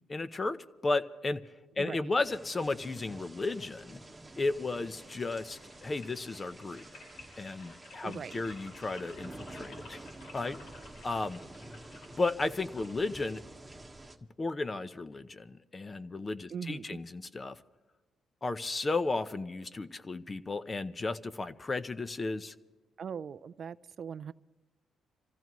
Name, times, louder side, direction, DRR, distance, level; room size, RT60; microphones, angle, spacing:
voice 1, 0.1-0.6 0.8-1.4 1.8-4.0 4.4-6.8 7.4-10.0 10.3-10.6 11.0-11.4 12.2-13.4 14.4-17.6 18.4-22.5, left 3 dB, 30° left, 13 dB, 0.8 m, -34 dB
voice 2, 1.8-2.1 8.0-8.3 16.5-17.0 23.0-24.3, right 7 dB, 50° right, 16 dB, 0.4 m, -40 dB
sound 1, 2.2-14.2, right 2 dB, 10° right, 1.5 m, -50 dB
sound 2, 4.9-13.8, left 2 dB, 75° left, 5.2 m, -54 dB
27.0 x 15.0 x 3.1 m, 1.2 s
cardioid pair, 90°, 0 cm